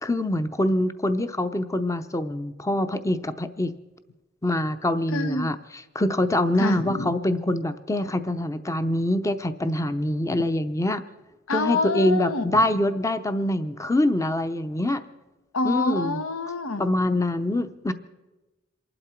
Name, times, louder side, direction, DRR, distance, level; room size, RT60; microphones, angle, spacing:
voice 1, 0.0-3.7 4.4-11.0 11.5-15.0 15.6-16.2 16.8-17.9, left 1 dB, 15° left, 11 dB, 0.6 m, -25 dB
voice 2, 5.1-5.6 6.6-7.2 11.5-12.6 15.5-16.9, left 3 dB, 90° left, 9 dB, 1.0 m, -27 dB
27.5 x 12.0 x 4.5 m, 1.1 s
head